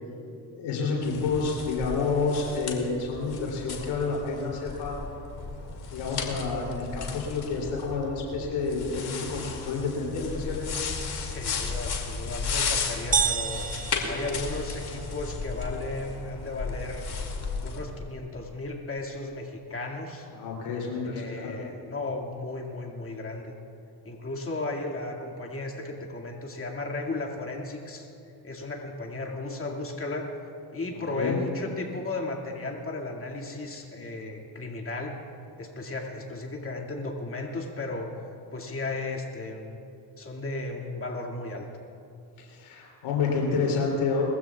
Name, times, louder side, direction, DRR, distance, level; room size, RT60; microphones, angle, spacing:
voice 1, 0.5-4.9 5.9-10.6 20.3-21.6 31.1-31.4 42.4-44.3, left 4 dB, 75° left, -2 dB, 3.3 m, -29 dB
sound 1, 1.0-17.8, left 4 dB, 50° left, 2.5 m, -34 dB
voice 2, 11.1-13.7 14.1-17.0 17.6-20.3 21.1-23.5 24.0-28.1 28.4-30.3 30.7-35.1 35.6-38.1 38.5-39.8 40.2-41.7, left 2 dB, 25° left, 0 dB, 2.3 m, -35 dB
sound 2, 13.1-15.1, right 6 dB, 20° right, 0.5 m, -29 dB
22.0 x 15.0 x 2.4 m, 2.5 s
hypercardioid pair, 45°, 49 cm